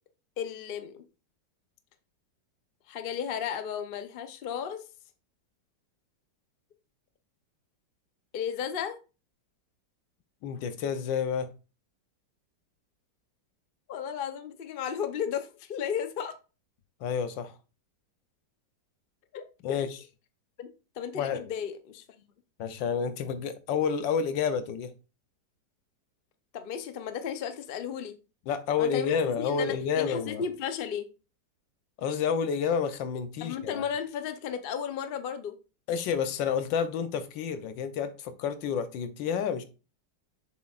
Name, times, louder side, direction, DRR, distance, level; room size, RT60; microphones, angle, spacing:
voice 1, 0.4-1.0 2.9-4.8 8.3-9.0 13.9-16.3 19.3-19.4 19.7-19.8 20.6-20.7 21.0-22.0 26.5-28.2 28.8-31.1 33.4-35.6, left 8 dB, 60° left, 0.5 m, -34 dB
voice 2, 10.4-11.5 17.0-17.5 19.6-19.9 21.2-21.4 22.6-24.9 28.5-30.4 32.0-33.8 35.9-39.6, left 7 dB, 85° left, 1.5 m, -29 dB
7.3 x 6.0 x 2.4 m
omnidirectional pair, 2.0 m